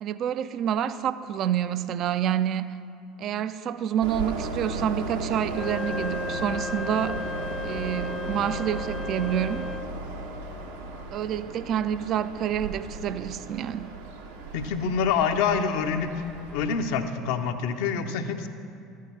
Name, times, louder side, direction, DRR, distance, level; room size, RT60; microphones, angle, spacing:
voice 1, 0.0-2.8 3.2-7.2 7.6-9.7 11.1-13.9, right 9 dB, 50° right, 0.4 m, -28 dB
Train, 4.0-16.7, right 3 dB, 80° right, 1.1 m, -35 dB
Wind instrument woodwind instrument, 5.5-10.0, left 4 dB, 20° left, 0.3 m, -35 dB
voice 2, 14.5-16.1 16.5-18.5, left 6 dB, 65° left, 0.7 m, -26 dB
12.5 x 6.5 x 7.0 m
figure-of-eight pair, 65°, 0 cm